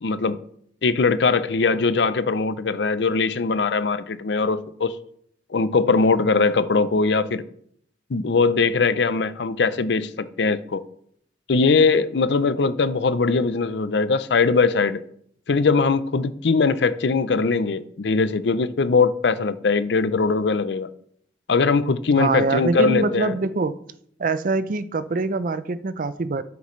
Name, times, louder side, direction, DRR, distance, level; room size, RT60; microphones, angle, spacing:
voice 1, 0.0-0.4 0.8-4.9 5.5-7.4 8.1-10.8 11.5-15.0 15.5-20.9 21.5-23.3, left 4 dB, 75° left, 0.6 m, -21 dB
voice 2, 22.2-23.7 24.2-26.4, right 3 dB, 50° right, 0.5 m, -24 dB
12.5 x 6.9 x 3.2 m
head